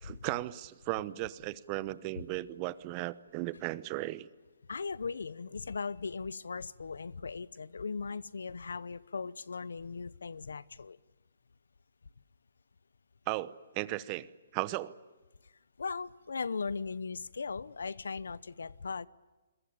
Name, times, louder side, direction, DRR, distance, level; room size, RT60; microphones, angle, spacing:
voice 1, 0.0-4.3 13.3-14.3 14.5-15.0, right 18 dB, 30° right, 17 dB, 1.0 m, -36 dB
voice 2, 4.7-11.0 15.4-19.1, left 5 dB, 90° left, 20 dB, 0.8 m, -38 dB
29.0 x 22.0 x 9.0 m, 1.2 s
hypercardioid pair, 150°, 0 cm